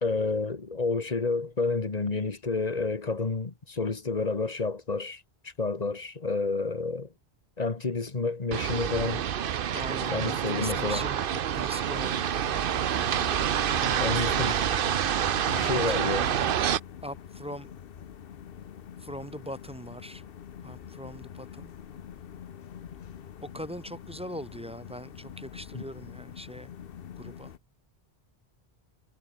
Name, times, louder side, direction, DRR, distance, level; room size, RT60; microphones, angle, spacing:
voice 1, 0.0-7.1 7.6-9.2 10.1-11.1 14.0-14.6 15.5-16.3 25.7-25.8, left 3 dB, 40° left, 1.5 m, -30 dB
sound 1, 8.5-16.8, right 9 dB, 60° right, 0.8 m, -27 dB
voice 2, 9.7-12.2 13.7-14.7 15.3-16.5 17.0-17.7 19.0-20.2 20.6-21.7 23.4-26.7 27.2-27.5, equal, 5° right, 0.9 m, -41 dB
sound 2, 11.9-27.6, left 8 dB, 60° left, 1.0 m, -45 dB
omnidirectional pair, 1.1 m